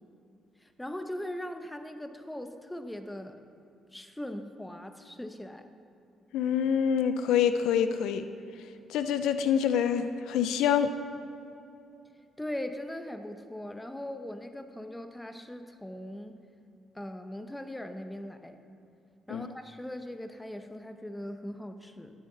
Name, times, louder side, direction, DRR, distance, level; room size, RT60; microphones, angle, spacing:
voice 1, 0.6-3.4 3.9-5.7 12.4-16.3 16.9-18.6 19.3-22.1, left 1 dB, 10° left, 7 dB, 0.8 m, -40 dB
voice 2, 6.3-8.3 8.9-10.9 19.3-19.5, left 8 dB, 85° left, 10 dB, 0.4 m, -26 dB
15.0 x 9.2 x 4.0 m, 2.7 s
cardioid pair, 90°, 0 cm